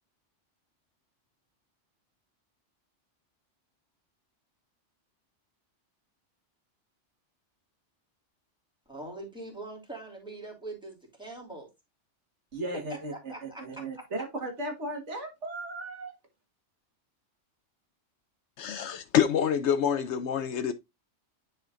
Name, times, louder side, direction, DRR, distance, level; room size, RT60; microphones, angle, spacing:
voice 1, 8.9-11.7 12.9-14.0, right 2 dB, 5° right, 2.8 m, -43 dB
voice 2, 12.5-16.2, right 2 dB, 70° right, 1.9 m, -36 dB
voice 3, 18.6-20.7, left 8 dB, 70° left, 0.9 m, -26 dB
10.0 x 4.4 x 2.5 m
omnidirectional pair, 1.3 m